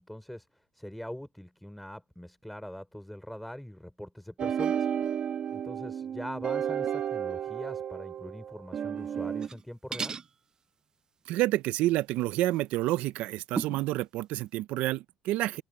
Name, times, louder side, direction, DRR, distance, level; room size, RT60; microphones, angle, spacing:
voice 1, 0.0-5.1 5.5-10.2, equal, ahead, 4.1 m, -43 dB
sound 1, 4.4-9.5, right 8 dB, 45° right, 1.3 m, -32 dB
sound 2, 9.3-9.6 9.9-10.3 12.5-12.6 13.5-13.9, right 6 dB, 30° right, 0.5 m, -34 dB
voice 2, 11.3-15.6, right 17 dB, 75° right, 0.5 m, -29 dB
open air
cardioid pair, 125°, 2 cm